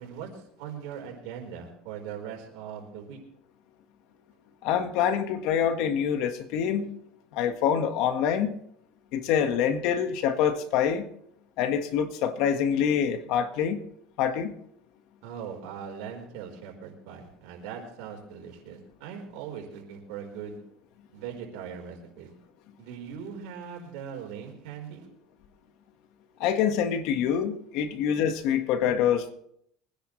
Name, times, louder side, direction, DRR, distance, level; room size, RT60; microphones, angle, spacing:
voice 1, 0.0-3.2 15.2-20.6 21.1-22.3 22.8-25.1, right 7 dB, 75° right, 4.6 m, -40 dB
voice 2, 4.6-6.9 7.3-8.5 9.1-11.0 11.6-13.8 14.2-14.5 26.4-29.3, left 8 dB, 65° left, 1.6 m, -25 dB
23.5 x 10.0 x 3.3 m
supercardioid pair, 125°, 0 cm